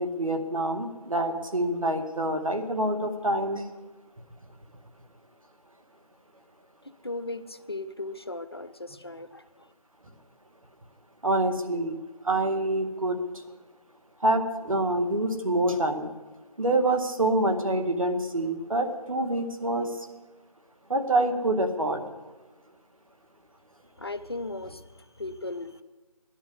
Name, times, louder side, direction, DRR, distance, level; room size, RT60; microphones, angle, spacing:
voice 1, 0.0-3.7 11.2-12.0 12.2-13.4 14.2-16.1 16.6-20.1 20.9-22.0, right 1 dB, 60° right, 6 dB, 2.0 m, -26 dB
voice 2, 7.0-9.7 24.0-25.8, left 2 dB, 40° left, 12 dB, 0.7 m, -37 dB
15.5 x 11.0 x 8.2 m, 1.2 s
figure-of-eight pair, 165°, 19 cm